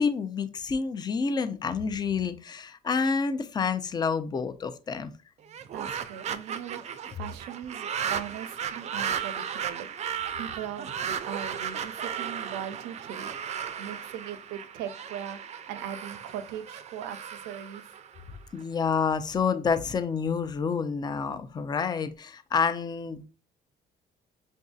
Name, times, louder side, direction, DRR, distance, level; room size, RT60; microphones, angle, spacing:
voice 1, 0.0-5.1 18.5-23.3, left 5 dB, 25° left, 0.4 m, -28 dB
sound 1, 5.4-18.6, right 8 dB, 40° right, 0.4 m, -35 dB
voice 2, 5.7-6.8 7.1-13.3 13.8-18.0, right 9 dB, 90° right, 0.6 m, -39 dB
6.3 x 2.6 x 2.3 m
cardioid pair, 110°, 17 cm